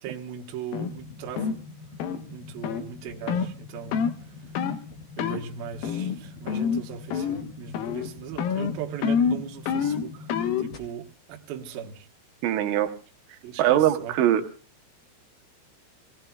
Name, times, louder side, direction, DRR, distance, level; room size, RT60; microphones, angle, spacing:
voice 1, 0.0-1.5 2.3-4.8 5.2-10.3 10.6-12.1 13.4-14.1, right 8 dB, 65° right, 2 dB, 2.7 m, -39 dB
sound 1, 0.7-0.9 1.4-1.6 2.0-2.2 2.6-2.8 3.3-3.5 3.9-4.2 4.6-4.8 5.2-5.4 5.8-6.2 6.5-6.8 7.1-7.5 7.7-8.1 8.4-10.7, left 7 dB, 75° left, 2.3 m, -27 dB
sound 2, 0.8-10.8, left 3 dB, 35° left, 2.4 m, -45 dB
voice 2, 12.4-12.9 13.6-14.4, right 12 dB, 85° right, 5 dB, 3.4 m, -21 dB
28.0 x 18.0 x 2.3 m, 0.37 s
omnidirectional pair, 5.4 m